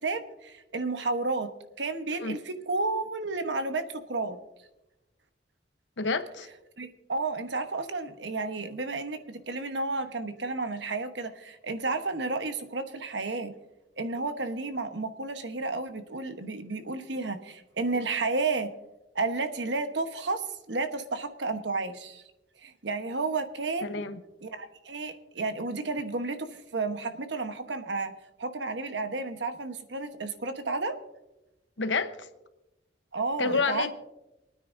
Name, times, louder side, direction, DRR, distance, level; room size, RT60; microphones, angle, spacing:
voice 1, 0.0-1.5 1.8-4.4 6.8-13.5 14.0-18.7 19.1-22.2 22.6-24.0 24.4-28.1 28.4-30.9 33.1-33.9, right 3 dB, 75° right, 1.1 m, -32 dB
voice 2, 6.0-6.5 23.8-24.2 31.8-32.3 33.4-33.9, left 4 dB, 85° left, 0.9 m, -29 dB
28.5 x 9.5 x 2.6 m
head